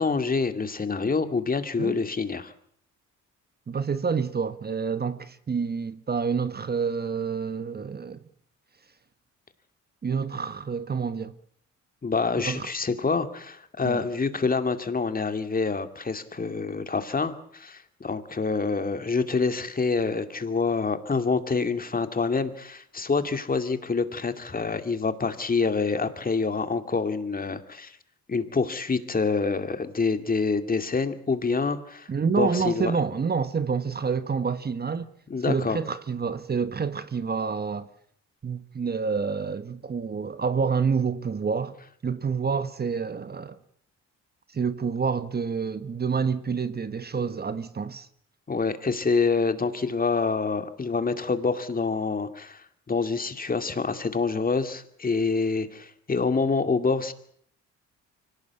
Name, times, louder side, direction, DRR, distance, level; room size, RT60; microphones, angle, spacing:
voice 1, 0.0-2.5 12.0-28.0 28.3-32.1 32.4-33.0 35.3-35.8 48.5-57.1, left 4 dB, 30° left, 2.4 m, -26 dB
voice 2, 3.7-8.2 10.0-11.3 12.4-12.7 13.8-14.1 32.1-35.1 35.5-37.9 38.4-41.8 42.0-43.6 44.5-48.1, right 5 dB, 30° right, 1.3 m, -28 dB
24.5 x 18.0 x 8.4 m
cardioid pair, 90°, 30 cm